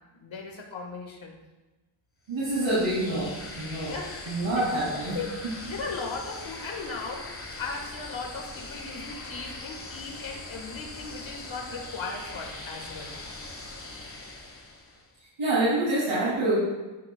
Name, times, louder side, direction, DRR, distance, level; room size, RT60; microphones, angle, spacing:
voice 1, 0.2-1.3 3.9-4.7 4.9-5.3 5.6-7.3 7.6-13.1, left 4 dB, 70° left, 2 dB, 1.7 m, -37 dB
sound 1, 2.3-15.1, left 2 dB, 25° left, 1.3 m, -41 dB
voice 2, 2.3-3.9 4.3-5.2 15.4-16.6, right 2 dB, 75° right, -8 dB, 2.9 m, -26 dB
11.0 x 10.0 x 2.3 m, 1.1 s
wide cardioid pair, 130°, 50 cm